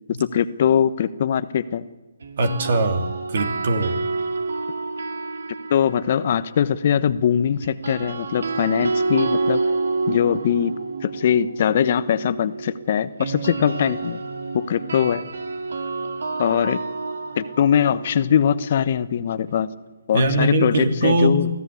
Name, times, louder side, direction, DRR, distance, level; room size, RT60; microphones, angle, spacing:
voice 1, 0.2-1.8 5.7-9.6 10.1-10.7 11.0-14.2 14.5-15.2 16.4-16.8 17.4-19.7 20.1-21.5, left 8 dB, 45° left, 13 dB, 1.0 m, -21 dB
sound 1, 2.2-6.4 7.6-19.5, right 3 dB, 70° right, 2.0 m, -29 dB
voice 2, 2.4-4.0 20.1-21.4, right 2 dB, 55° right, 6 dB, 2.9 m, -21 dB
24.0 x 15.5 x 8.4 m, 1.1 s
figure-of-eight pair, 145°, 0 cm